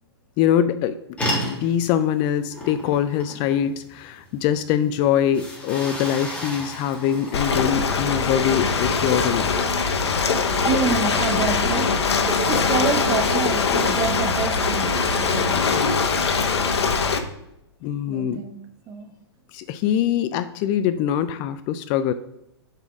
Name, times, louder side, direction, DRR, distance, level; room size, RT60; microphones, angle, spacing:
voice 1, 0.4-1.0 1.3-9.5 17.8-18.4 19.5-22.1, left 10 dB, 35° left, 12 dB, 0.4 m, -23 dB
sound 1, 1.2-9.6, equal, 10° left, 1.9 m, -34 dB
Ocean, 7.3-17.2, left 5 dB, 75° left, 1.0 m, -22 dB
voice 2, 10.6-15.7 18.1-18.6 18.9-19.1, right 5 dB, 30° right, 7 dB, 1.1 m, -27 dB
7.0 x 4.2 x 5.9 m, 0.83 s
hypercardioid pair, 115°, 14 cm